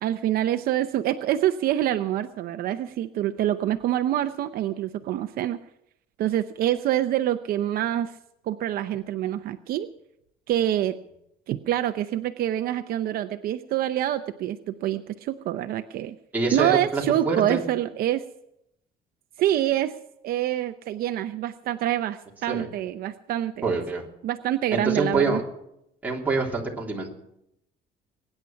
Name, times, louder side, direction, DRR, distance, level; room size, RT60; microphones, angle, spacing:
voice 1, 0.0-5.6 6.2-8.2 8.4-9.9 10.5-10.9 11.5-16.2 16.5-18.2 19.4-19.9 20.2-23.7 24.2-25.4, right 12 dB, 60° right, 9 dB, 0.7 m, -26 dB
voice 2, 16.3-17.6 22.5-22.7 23.6-24.0 24.7-25.4 26.0-27.1, right 3 dB, 10° right, -3 dB, 3.0 m, -26 dB
23.0 x 9.9 x 5.8 m, 0.81 s
cardioid pair, 160°, 17 cm